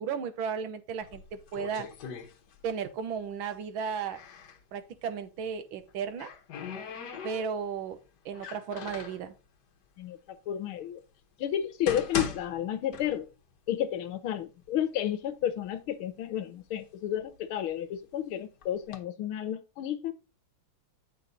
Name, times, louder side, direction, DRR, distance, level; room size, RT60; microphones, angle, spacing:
voice 1, 0.0-1.9 2.6-4.2 4.7-6.3 7.2-8.0 8.2-9.3, right 6 dB, 70° right, 1.7 m, -34 dB
sound 1, 1.0-2.9 3.2-4.6 5.7-7.8 8.3-9.3 10.0-10.1 10.8-10.9 11.5-13.5 13.8-13.9 14.6-14.7 15.1-15.8 16.3-18.0 18.6-19.0, left 6 dB, 55° left, 1.5 m, -40 dB
voice 2, 10.5-11.0 11.4-13.3 13.7-20.1, left 10 dB, 75° left, 1.7 m, -32 dB
8.3 x 6.0 x 3.9 m
omnidirectional pair, 2.4 m